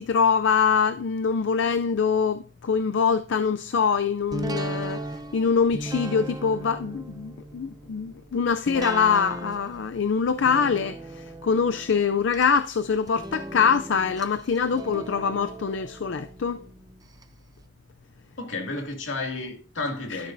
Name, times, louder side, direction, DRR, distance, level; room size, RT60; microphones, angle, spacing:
voice 1, 0.0-5.0 5.3-16.6 20.1-20.2, left 6 dB, 70° left, 0.5 m, -24 dB
sound 1, 4.3-17.2 17.6-17.7, right 2 dB, 20° right, 0.7 m, -38 dB
voice 2, 18.4-20.3, left 3 dB, 85° left, 2.4 m, -32 dB
12.5 x 10.0 x 2.6 m
head